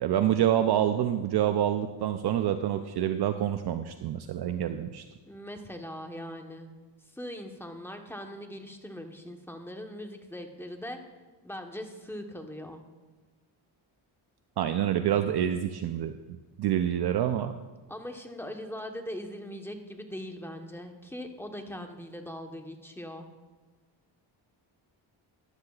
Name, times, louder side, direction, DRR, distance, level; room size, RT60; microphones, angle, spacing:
voice 1, 0.0-5.0 14.6-16.1 16.6-17.5, right 10 dB, 50° right, 8 dB, 0.6 m, -27 dB
voice 2, 5.3-6.7 7.1-11.0 11.4-12.8 17.9-23.3, equal, 5° left, 4 dB, 1.1 m, -40 dB
14.5 x 11.5 x 2.4 m, 1.3 s
cardioid pair, 95°, 49 cm